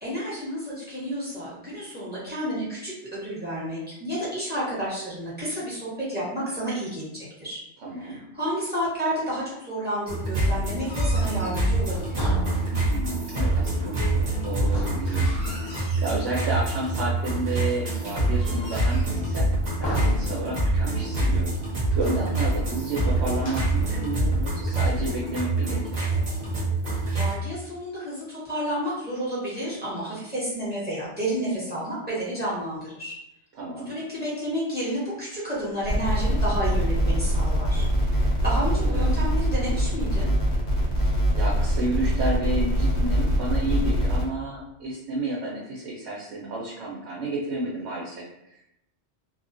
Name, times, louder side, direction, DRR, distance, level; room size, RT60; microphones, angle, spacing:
voice 1, 0.0-7.6 7.9-12.3 27.1-33.1 33.9-40.3, equal, 10° right, -9 dB, 1.0 m, -31 dB
voice 2, 7.8-8.2 12.7-15.3 15.6-19.5 19.8-21.5 21.9-25.8 33.6-33.9 38.6-39.2 41.0-48.6, right 2 dB, 80° right, -5 dB, 0.9 m, -31 dB
sound 1, 10.1-27.3, right 2 dB, 45° right, 0.8 m, -25 dB
sound 2, 10.8-13.1 14.6-16.3 16.7-17.3 17.8-19.2 19.8-20.9 21.2-21.3 21.7-22.3 23.3-24.0, equal, 45° left, 0.3 m, -37 dB
sound 3, 35.8-44.2, equal, 70° left, 1.0 m, -23 dB
2.3 x 2.2 x 2.5 m, 0.82 s
omnidirectional pair, 1.1 m